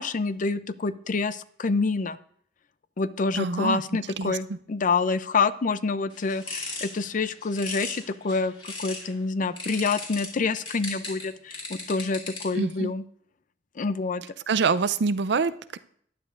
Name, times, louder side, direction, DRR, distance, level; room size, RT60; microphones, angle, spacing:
voice 1, 0.0-2.2 3.0-13.0 13.8-14.2, left 4 dB, 45° left, 14 dB, 0.5 m, -27 dB
voice 2, 3.4-3.8 4.2-4.4 12.5-12.9 14.5-15.8, right 4 dB, 70° right, 14 dB, 0.5 m, -25 dB
sound 1, 6.1-9.1 9.6-12.7, left 2 dB, 30° left, 2.4 m, -38 dB
14.5 x 10.0 x 2.5 m, 0.63 s
head